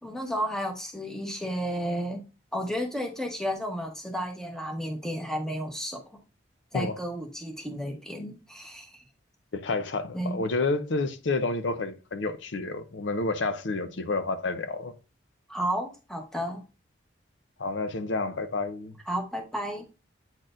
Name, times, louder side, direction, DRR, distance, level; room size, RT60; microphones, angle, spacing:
voice 1, 0.0-2.2 2.5-6.0 6.7-9.0 10.1-10.4 15.5-16.6 19.1-19.9, equal, 5° left, 1.0 m, -32 dB
voice 2, 9.5-14.9 17.6-19.0, left 3 dB, 75° left, 0.6 m, -29 dB
8.8 x 4.3 x 2.5 m
head